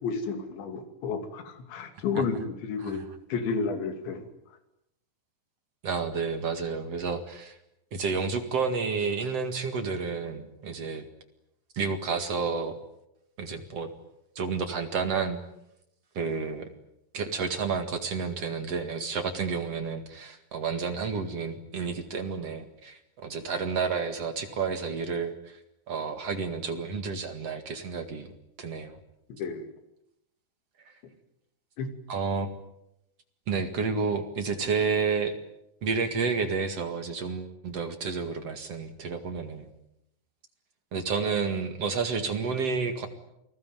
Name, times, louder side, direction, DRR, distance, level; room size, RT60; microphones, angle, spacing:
voice 1, 0.0-3.0 3.3-4.2 29.4-29.7 31.8-31.9, left 5 dB, 70° left, 7 dB, 4.8 m, -31 dB
voice 2, 5.8-7.6 7.9-11.1 11.7-12.7 13.4-13.9 14.4-15.4 16.1-16.7 17.1-25.6 25.9-28.3 28.6-29.0 32.1-32.5 33.5-35.3 35.8-39.7 40.9-43.1, right 5 dB, 50° right, 7 dB, 2.0 m, -30 dB
29.0 x 20.5 x 9.3 m, 0.82 s
omnidirectional pair, 5.6 m